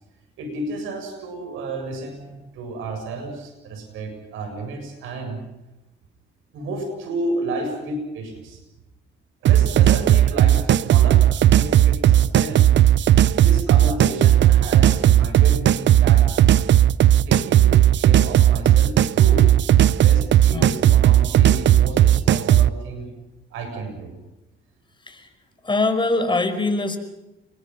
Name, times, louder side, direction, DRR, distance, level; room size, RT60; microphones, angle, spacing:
voice 1, 0.4-5.4 6.5-8.6 9.4-12.7 13.4-16.2 17.3-19.5 19.9-23.1 23.5-24.1, right 2 dB, 90° right, 4 dB, 7.7 m, -32 dB
sound 1, 9.5-22.7, right 12 dB, 65° right, 0.8 m, -15 dB
voice 2, 25.6-27.0, left 2 dB, 25° left, 7 dB, 5.2 m, -23 dB
29.5 x 23.0 x 5.8 m, 1.0 s
cardioid pair, 90°, 20 cm